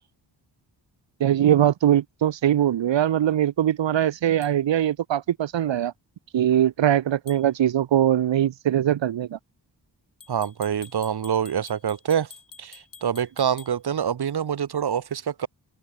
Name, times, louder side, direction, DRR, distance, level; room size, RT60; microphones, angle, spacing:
voice 1, 1.2-5.9 6.3-9.4, right 11 dB, 90° right, 1.3 m, -21 dB
sound 1, 4.4-4.6 7.3-7.5 10.2-13.8, left 5 dB, 50° left, 6.6 m, -48 dB
voice 2, 10.3-12.3 12.6-15.5, right 8 dB, 60° right, 1.4 m, -26 dB
open air
cardioid pair, 85°, 43 cm